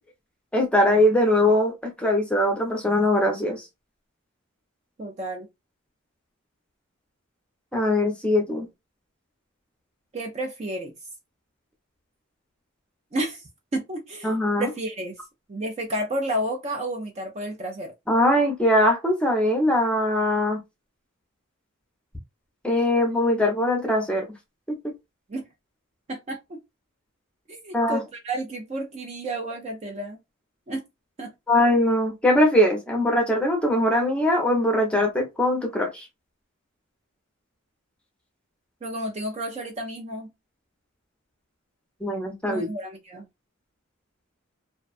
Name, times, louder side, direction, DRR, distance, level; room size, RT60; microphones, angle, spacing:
voice 1, 0.5-3.6 7.7-8.7 14.2-14.7 18.1-20.6 22.6-24.3 27.7-28.0 31.5-36.1 42.0-42.7, left 1 dB, 5° left, 0.6 m, -21 dB
voice 2, 5.0-5.5 10.1-10.9 13.1-14.3 14.6-15.2 15.5-17.9 25.3-25.5 26.1-26.6 27.5-30.2 30.7-30.9 31.2-31.3 38.8-40.3 42.5-43.2, right 1 dB, 30° right, 0.4 m, -31 dB
2.6 x 2.2 x 2.3 m
head